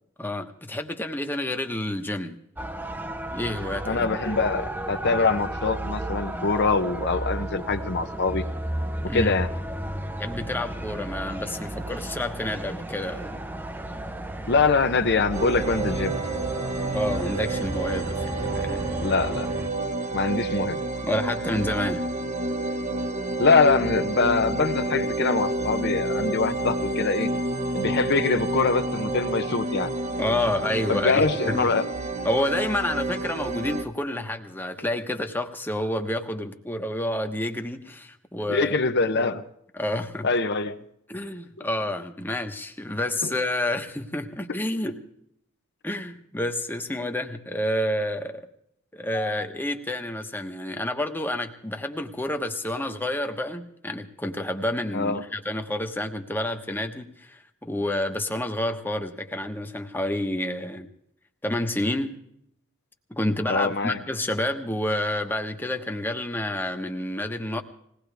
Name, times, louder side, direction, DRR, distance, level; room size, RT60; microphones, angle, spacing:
voice 1, 0.2-2.4 3.3-4.2 9.1-9.4 10.2-13.4 16.9-18.9 21.0-22.1 30.2-31.7 32.2-38.8 39.7-40.3 41.1-45.1 45.8-48.5 48.9-60.9 61.4-62.2 63.1-67.6, left 1 dB, 10° left, 4 dB, 1.2 m, -29 dB
sound 1, 2.6-19.7, right 1 dB, 10° right, 0.7 m, -33 dB
voice 2, 3.9-8.4 9.1-9.5 14.5-16.1 19.0-19.5 20.1-20.8 23.4-27.3 27.7-29.9 30.9-31.8 38.5-39.4 40.2-40.8 54.9-55.2 63.5-64.0, left 4 dB, 50° left, 9 dB, 0.9 m, -23 dB
sound 2, 15.3-33.8, right 2 dB, 35° right, 1.0 m, -29 dB
21.0 x 18.0 x 3.5 m, 0.72 s
head